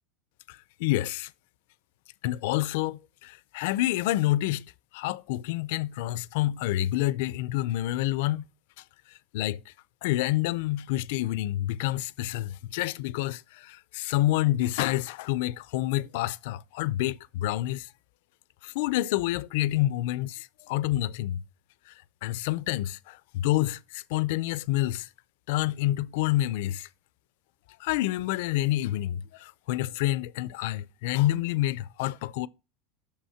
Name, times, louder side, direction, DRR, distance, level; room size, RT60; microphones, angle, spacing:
voice 1, 0.5-1.3 2.2-8.5 9.3-9.6 10.0-17.9 18.6-21.4 21.9-22.0 22.2-25.1 25.5-26.9 27.8-32.5, left 15 dB, 65° left, 0.4 m, -28 dB
6.5 x 5.6 x 5.6 m
supercardioid pair, 155°, 0 cm